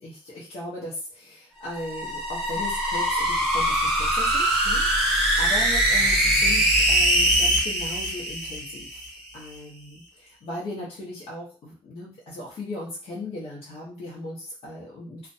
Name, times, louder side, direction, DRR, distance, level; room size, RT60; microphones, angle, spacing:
voice 1, 0.0-9.0 9.3-15.3, left 1 dB, 75° left, -6 dB, 0.7 m, -37 dB
sound 1, 1.6-9.1, right 1 dB, 5° right, 0.8 m, -22 dB
2.4 x 2.1 x 2.6 m, 0.38 s
wide cardioid pair, 150°, 10 cm